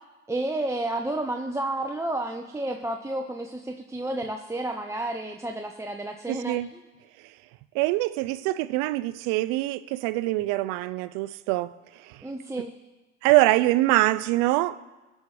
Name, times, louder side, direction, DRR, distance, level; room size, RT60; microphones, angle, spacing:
voice 1, 0.3-6.8 12.2-12.7, right 2 dB, 10° right, 3 dB, 0.7 m, -31 dB
voice 2, 6.3-6.7 7.7-11.7 12.1-12.2 13.2-14.8, right 18 dB, 85° right, 16 dB, 0.5 m, -24 dB
17.0 x 6.4 x 4.9 m, 1.2 s
supercardioid pair, 90°, 31 cm